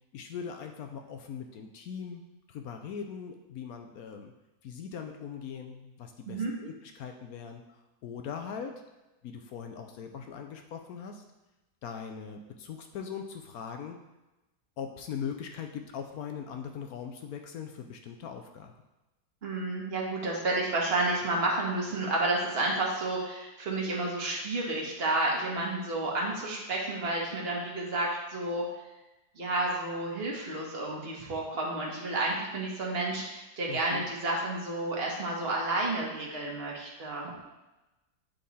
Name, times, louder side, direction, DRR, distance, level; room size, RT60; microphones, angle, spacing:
voice 1, 0.1-2.2 2.5-4.3 4.6-8.7 9.2-11.2 11.8-14.0 14.8-18.7 33.7-34.1, left 7 dB, 70° left, 4 dB, 1.0 m, -40 dB
voice 2, 19.4-28.7 29.3-37.3, right 2 dB, 40° right, -2 dB, 1.5 m, -31 dB
8.5 x 3.7 x 4.1 m, 1.0 s
omnidirectional pair, 1.8 m